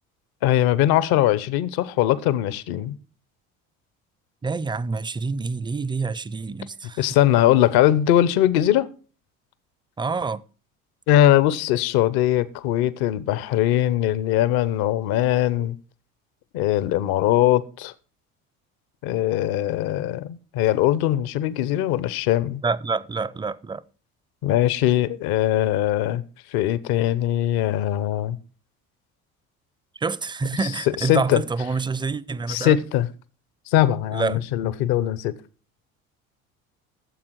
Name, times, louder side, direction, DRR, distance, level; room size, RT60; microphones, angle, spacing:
voice 1, 0.4-3.0 7.0-8.9 11.1-15.8 16.5-17.9 19.0-22.6 24.4-26.2 26.5-28.4 31.0-31.4 32.5-33.1 33.7-35.3, left 12 dB, 65° left, 0.9 m, -21 dB
voice 2, 4.4-7.2 10.0-10.4 22.6-23.8 30.0-32.8 34.1-34.4, right 4 dB, 10° right, 0.5 m, -27 dB
14.0 x 7.4 x 4.6 m
hypercardioid pair, 65°, 41 cm